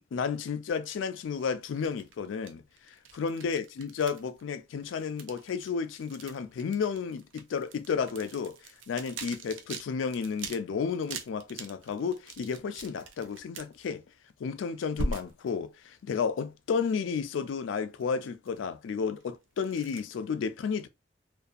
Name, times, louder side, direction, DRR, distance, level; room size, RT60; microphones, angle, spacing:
voice 1, 0.1-2.6 3.1-8.6 8.9-14.0 14.4-20.9, left 6 dB, 85° left, 0.3 m, -32 dB
sound 1, 1.3-4.4 4.8-9.8 10.1-10.6 10.9-13.8 15.0-15.5 16.4-16.5 18.0-18.1 18.5-18.6 19.2-19.3 19.6-20.0, right 2 dB, 85° right, 0.5 m, -41 dB
2.6 x 2.3 x 2.4 m
head